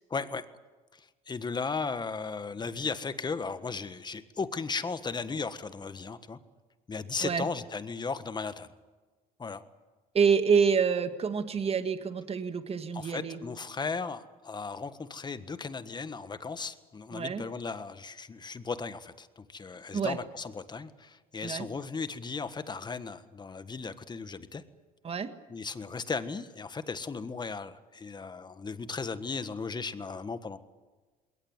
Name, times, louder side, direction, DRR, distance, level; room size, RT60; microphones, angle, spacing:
voice 1, 0.1-0.5 0.9-6.4 6.9-8.7 9.4-9.6 12.9-24.6 25.5-30.6, left 4 dB, 25° left, 12 dB, 1.5 m, -36 dB
voice 2, 10.1-13.4 17.1-17.5 19.9-20.2 21.4-21.7 25.0-25.3, right 6 dB, 35° right, 9 dB, 1.8 m, -27 dB
21.5 x 18.5 x 9.6 m, 1.3 s
cardioid pair, 110°, 17 cm